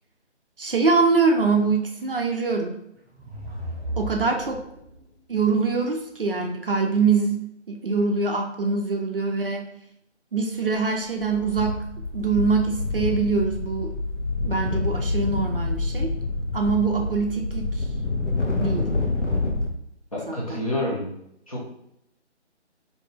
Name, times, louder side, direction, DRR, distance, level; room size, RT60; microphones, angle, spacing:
voice 1, 0.6-2.7 4.0-4.6 5.3-7.4 7.7-9.7 10.3-11.8 12.1-13.9 14.4-16.2 16.5-17.9 18.6-18.9 20.3-20.6, right 4 dB, 50° right, 2 dB, 0.4 m, -24 dB
sound 1, 2.9-5.0, equal, 15° right, 0.7 m, -34 dB
sound 2, 10.7-10.9 11.2-19.7, left 3 dB, 75° left, 0.8 m, -27 dB
voice 2, 20.1-21.1 21.5-21.7, left 1 dB, 30° left, -5 dB, 0.6 m, -28 dB
2.6 x 2.2 x 2.9 m, 0.78 s
figure-of-eight pair, 155°, 35 cm